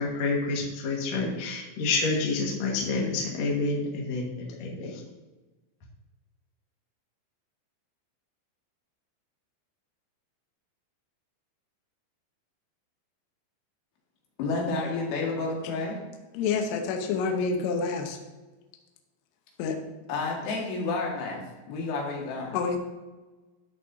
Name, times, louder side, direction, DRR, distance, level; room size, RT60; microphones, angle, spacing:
voice 1, 0.0-5.0, left 3 dB, 55° left, -2 dB, 1.9 m, -28 dB
voice 2, 14.4-16.0 20.1-22.6, left 3 dB, 90° left, -2 dB, 4.4 m, -30 dB
voice 3, 16.3-18.2 19.6-19.8 22.5-22.8, left 5 dB, 75° left, 3 dB, 2.9 m, -28 dB
13.0 x 8.3 x 2.7 m, 1.2 s
omnidirectional pair, 5.5 m